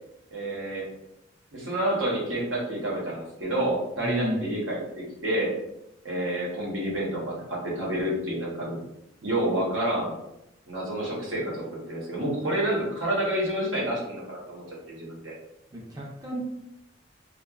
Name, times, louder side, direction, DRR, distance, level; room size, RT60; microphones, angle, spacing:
voice 1, 0.3-0.9 1.5-5.5 6.0-8.8 9.2-10.2 10.7-15.3, right 1 dB, 85° right, -3 dB, 0.8 m, -29 dB
voice 2, 4.0-4.4 15.7-16.4, right 1 dB, 20° right, -3 dB, 0.4 m, -31 dB
2.7 x 2.2 x 2.3 m, 0.86 s
head